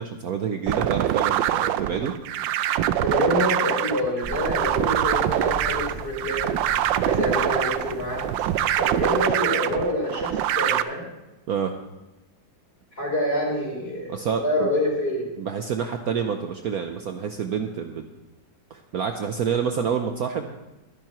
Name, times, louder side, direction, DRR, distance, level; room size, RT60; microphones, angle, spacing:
voice 1, 0.0-2.1 11.5-11.7 14.1-14.7 15.4-18.0 18.7-20.6, right 7 dB, 60° right, 5 dB, 1.1 m, -28 dB
sound 1, 0.7-10.8, right 12 dB, 85° right, 1.3 m, -24 dB
voice 2, 3.0-6.6 7.0-8.2 8.8-11.0 13.0-14.1 14.4-15.2, left 1 dB, 30° left, -2 dB, 4.3 m, -26 dB
sound 2, 4.2-9.2, equal, 5° right, 4.7 m, -39 dB
22.0 x 10.5 x 3.0 m, 1.0 s
omnidirectional pair, 2.0 m